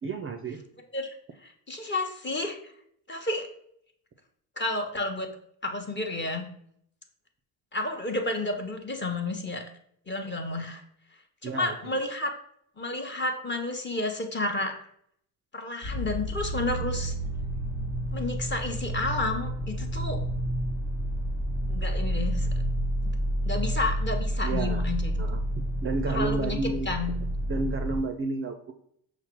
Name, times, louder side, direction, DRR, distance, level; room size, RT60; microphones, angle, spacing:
voice 1, 0.0-0.6 11.4-12.0 24.4-24.8 25.2-25.4 25.8-26.9 27.5-28.7, right 3 dB, 25° right, 5 dB, 0.5 m, -31 dB
voice 2, 1.4-2.6 3.1-3.5 4.6-5.3 5.6-6.5 7.7-9.6 10.1-10.8 11.4-12.3 12.8-14.7 15.5-17.1 18.1-20.2 21.7-22.5 23.4-25.1 26.1-26.6 26.8-27.2, left 2 dB, 20° left, 3 dB, 0.9 m, -31 dB
sound 1, 15.8-28.0, right 1 dB, 80° left, 1.3 m, -30 dB
5.7 x 2.0 x 4.5 m, 0.68 s
hypercardioid pair, 55°, 49 cm